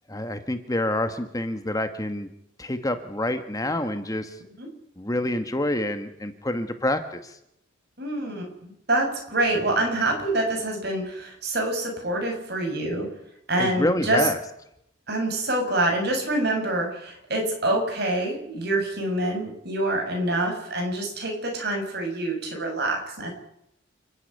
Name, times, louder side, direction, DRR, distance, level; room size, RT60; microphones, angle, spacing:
voice 1, 0.1-2.3 2.6-4.4 5.0-7.4 13.6-14.4, left 1 dB, 15° left, 8 dB, 1.2 m, -27 dB
voice 2, 8.0-13.1 13.5-14.3 15.1-23.3, right 1 dB, 55° right, 2 dB, 6.8 m, -26 dB
28.5 x 10.0 x 9.9 m, 0.78 s
head